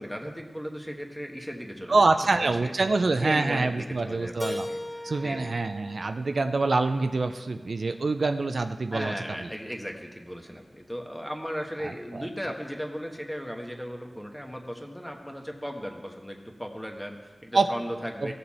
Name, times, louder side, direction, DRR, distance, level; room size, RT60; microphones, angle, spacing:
voice 1, 0.0-2.0 2.4-2.7 3.1-5.6 8.9-18.3, equal, 5° left, 2 dB, 1.3 m, -36 dB
voice 2, 1.9-4.7 5.0-9.1 11.8-12.3 17.5-17.7 18.2-18.3, right 3 dB, 75° right, 7 dB, 0.5 m, -25 dB
Keyboard (musical), 4.4-7.3, left 1 dB, 25° left, 0.7 m, -38 dB
17.0 x 6.8 x 4.3 m, 1.3 s
wide cardioid pair, 80°, 0 cm